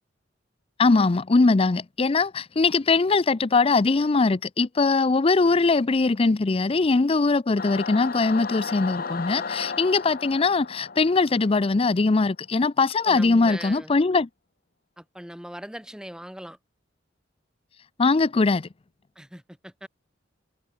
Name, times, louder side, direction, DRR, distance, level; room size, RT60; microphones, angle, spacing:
voice 1, 0.8-14.3 18.0-18.7, left 3 dB, 30° left, 0.5 m, -21 dB
Singing / Musical instrument, 7.6-12.2, left 5 dB, 50° left, 1.2 m, -35 dB
voice 2, 13.0-13.9 15.0-16.6 19.1-19.9, equal, 5° right, 1.7 m, -40 dB
head